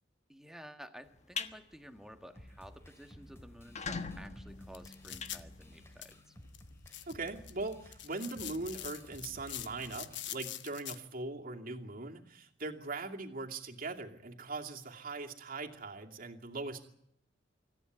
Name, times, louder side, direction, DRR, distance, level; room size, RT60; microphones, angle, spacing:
voice 1, 0.3-6.3, equal, 5° right, 7 dB, 1.6 m, -52 dB
sound 1, 1.1-1.5 2.0-2.2 2.6-2.7 2.9-3.0 3.5-6.1, left 5 dB, 40° left, 1.3 m, -41 dB
sound 2, 2.3-10.3, equal, 15° left, 2.5 m, -55 dB
sound 3, 4.5-11.0, left 12 dB, 65° left, 1.0 m, -46 dB
voice 2, 7.1-16.9, right 3 dB, 50° right, 2 dB, 2.6 m, -41 dB
25.5 x 14.5 x 9.7 m, 0.74 s
head